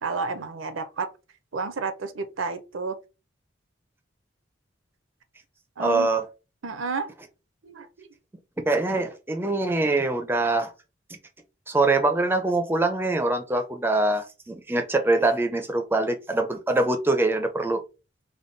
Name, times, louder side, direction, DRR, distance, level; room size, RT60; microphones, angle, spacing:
voice 1, 0.0-1.1 1.5-3.0 5.8-6.1 6.6-7.1 7.6-8.1, right 4 dB, 75° right, 0.6 m, -31 dB
voice 2, 5.8-6.2 8.7-10.7 11.7-17.8, right 2 dB, 10° right, 0.4 m, -24 dB
3.5 x 2.2 x 3.8 m
head